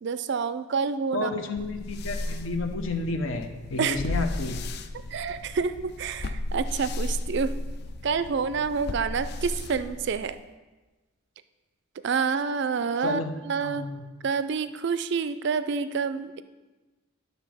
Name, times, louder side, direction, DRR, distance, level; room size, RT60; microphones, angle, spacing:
voice 1, 0.0-1.3 3.8-4.2 5.1-7.5 8.0-10.4 12.0-13.9 14.2-16.4, right 5 dB, 50° right, 13 dB, 0.3 m, -28 dB
voice 2, 1.1-4.6 13.0-14.0, left 2 dB, 65° left, 5 dB, 0.8 m, -31 dB
sound 1, 1.6-10.5, left 2 dB, 50° left, 0.4 m, -34 dB
11.0 x 4.1 x 6.1 m, 1.2 s
head